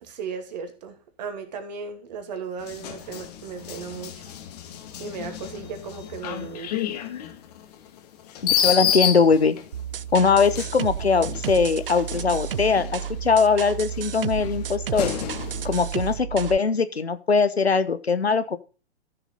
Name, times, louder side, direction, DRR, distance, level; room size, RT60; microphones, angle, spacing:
voice 1, 0.1-4.1 5.0-6.9, right 5 dB, 40° right, 2.5 m, -36 dB
sound 1, 2.6-9.8 10.4-13.4 13.9-15.9, left 9 dB, 40° left, 2.0 m, -30 dB
voice 2, 8.4-9.6 10.1-15.1 15.6-18.6, left 5 dB, 75° left, 1.2 m, -21 dB
sound 2, 9.7-16.6, right 9 dB, 60° right, 0.6 m, -32 dB
14.0 x 7.0 x 4.0 m
figure-of-eight pair, 120°, 32 cm